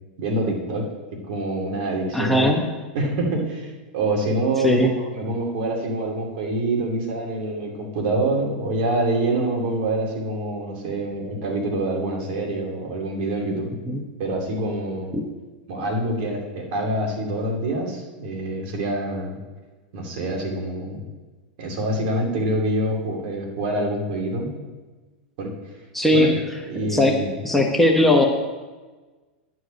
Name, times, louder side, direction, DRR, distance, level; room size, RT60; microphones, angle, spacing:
voice 1, 0.2-0.8 1.3-2.5 2.9-13.7 14.2-15.2 15.7-19.4 19.9-21.0 21.6-24.5 25.4-25.5 26.1-26.4 26.7-27.3, right 1 dB, 60° right, 0 dB, 2.8 m, -26 dB
voice 2, 2.1-2.6 4.6-4.9 13.8-14.0 15.1-15.2 25.9-26.3 26.8-28.2, left 1 dB, 5° left, 1 dB, 1.1 m, -19 dB
11.0 x 4.8 x 8.2 m, 1.3 s
hypercardioid pair, 115°, 5 cm